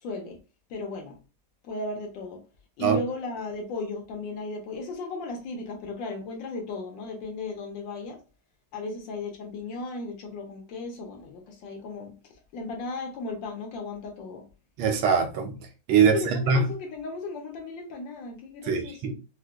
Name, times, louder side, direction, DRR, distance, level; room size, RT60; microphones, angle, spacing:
voice 1, 0.0-0.4 0.7-1.2 1.6-2.4 2.8-8.2 8.7-14.4 16.0-19.1, left 3 dB, 75° left, 1.3 m, -35 dB
voice 2, 14.8-15.6 15.9-16.6 18.7-19.1, right 5 dB, 90° right, 1.5 m, -22 dB
4.8 x 2.1 x 2.2 m
omnidirectional pair, 2.2 m